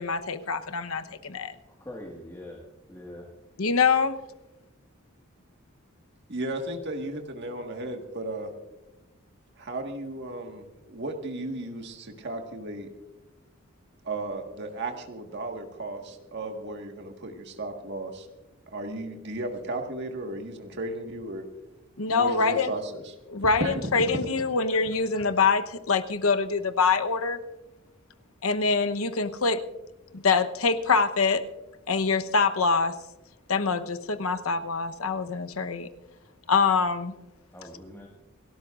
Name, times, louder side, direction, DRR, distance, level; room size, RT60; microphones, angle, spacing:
voice 1, 0.0-1.5 3.6-4.1 22.0-22.7 23.3-27.4 28.4-29.6 30.1-31.4 31.9-32.9 33.5-35.9 36.5-37.1, left 4 dB, 85° left, 9 dB, 1.0 m, -24 dB
voice 2, 1.8-3.3 37.5-38.1, left 1 dB, 15° left, -1 dB, 1.7 m, -43 dB
voice 3, 6.3-8.5 9.6-12.9 14.0-18.3 18.7-21.4 22.1-23.8 24.1-24.2 25.2-25.3, right 2 dB, 55° right, 3 dB, 1.7 m, -35 dB
28.5 x 13.0 x 2.5 m, 1.0 s
head